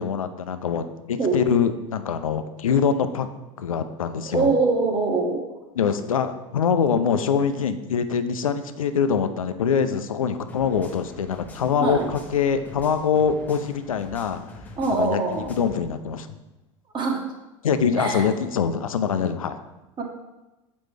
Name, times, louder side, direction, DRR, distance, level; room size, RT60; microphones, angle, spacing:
voice 1, 0.0-3.3 3.6-4.6 5.8-15.2 15.5-16.3 17.6-19.6, left 6 dB, 85° left, 10 dB, 0.5 m, -24 dB
voice 2, 4.3-5.4 11.8-12.1 14.8-15.5 16.9-17.2 18.0-18.2 20.0-20.1, right 3 dB, 25° right, 1 dB, 1.4 m, -23 dB
sound 1, 10.5-15.8, left 1 dB, 10° left, 1.1 m, -45 dB
7.4 x 5.1 x 3.3 m, 1.0 s
hypercardioid pair, 85°, 17 cm